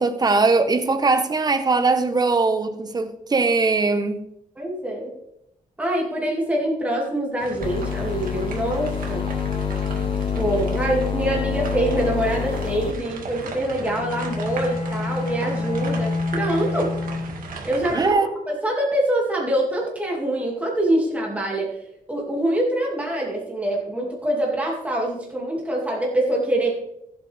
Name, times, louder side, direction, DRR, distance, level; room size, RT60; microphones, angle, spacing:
voice 1, 0.0-4.2 17.9-18.3, right 3 dB, 25° right, 1.0 m, -20 dB
voice 2, 4.6-5.1 5.8-9.2 10.3-16.9 17.6-21.8 22.1-26.7, right 1 dB, 10° right, 2.4 m, -25 dB
sound 1, 7.4-18.1, right 3 dB, 75° right, 2.2 m, -37 dB
sound 2, 7.6-12.9, left 7 dB, 40° left, 0.7 m, -26 dB
Bowed string instrument, 13.8-17.6, left 3 dB, 55° left, 3.1 m, -28 dB
15.0 x 8.3 x 3.5 m
wide cardioid pair, 135°, 14 cm